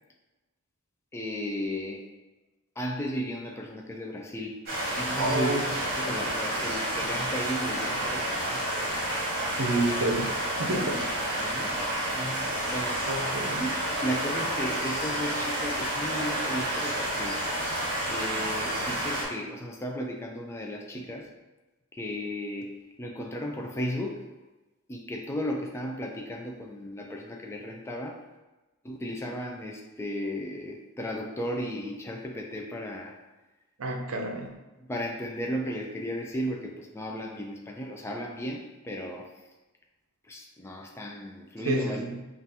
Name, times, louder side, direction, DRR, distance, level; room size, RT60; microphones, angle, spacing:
voice 1, 1.1-2.1 2.8-4.6 5.0-5.6 6.0-8.6 10.8-11.1 11.4-11.8 12.1-13.0 13.6-17.4 18.1-21.3 21.9-24.2 24.9-28.2 28.8-33.2 34.0-34.1 34.8-39.3 40.2-42.0, equal, 10° left, 1 dB, 0.3 m, -35 dB
sound 1, 4.7-19.2, right 1 dB, 45° right, 1.3 m, -30 dB
voice 2, 5.2-5.6 9.6-11.0 11.3-11.5 13.1-13.6 33.8-34.5 41.6-42.2, right 2 dB, 70° right, 3 dB, 0.6 m, -29 dB
5.5 x 2.5 x 2.7 m, 1.1 s
head